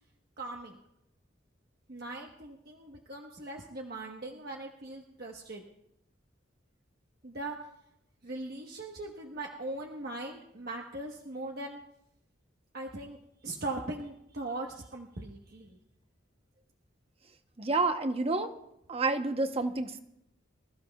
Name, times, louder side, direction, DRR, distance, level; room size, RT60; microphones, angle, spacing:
voice 1, 0.4-0.8 1.9-5.6 7.2-7.6 8.2-11.8 12.7-15.8, right 2 dB, 55° right, 0 dB, 1.2 m, -40 dB
voice 2, 17.6-18.5 18.9-20.0, right 3 dB, 30° right, 8 dB, 0.8 m, -29 dB
26.0 x 14.5 x 2.3 m, 0.82 s
head